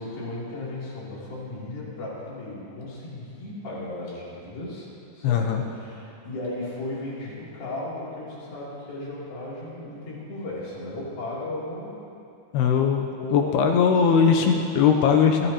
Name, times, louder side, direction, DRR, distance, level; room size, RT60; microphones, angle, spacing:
voice 1, 0.0-4.9 5.1-12.0 13.2-14.6 15.4-15.5, left 2 dB, 60° left, -7 dB, 4.6 m, -35 dB
voice 2, 5.2-5.6 12.5-15.5, left 6 dB, 85° left, 3 dB, 2.5 m, -20 dB
27.0 x 10.5 x 2.9 m, 2.7 s
omnidirectional pair, 5.0 m